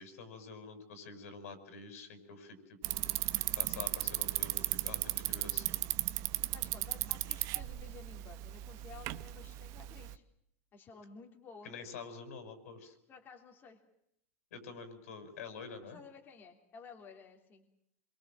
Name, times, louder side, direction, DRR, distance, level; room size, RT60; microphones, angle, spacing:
voice 1, 0.0-3.0 3.5-5.9 11.6-13.0 14.5-16.0, left 4 dB, 75° left, 9 dB, 6.5 m, -47 dB
Bicycle, 2.8-10.1, right 17 dB, 45° right, 1.1 m, -36 dB
voice 2, 6.5-10.2 10.7-11.7 13.1-13.8 15.8-17.7, left 5 dB, 25° left, 2 dB, 3.2 m, -54 dB
28.0 x 23.0 x 7.6 m, 0.75 s
supercardioid pair, 140°, 8 cm